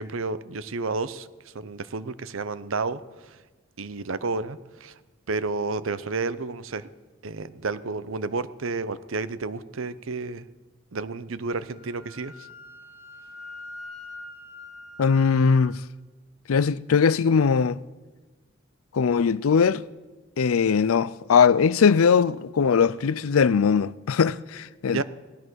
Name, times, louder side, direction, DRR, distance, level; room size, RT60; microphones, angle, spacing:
voice 1, 0.0-3.4 3.8-4.9 5.3-6.9 7.2-10.5 10.9-12.5 24.9-25.0, right 3 dB, 75° right, 0.7 m, -31 dB
Wind instrument woodwind instrument, 11.6-15.7, left 2 dB, 35° left, 3.4 m, -44 dB
voice 2, 15.0-15.8 16.5-17.8 18.9-19.8 20.4-25.0, left 6 dB, 90° left, 0.5 m, -20 dB
17.0 x 12.0 x 6.3 m
head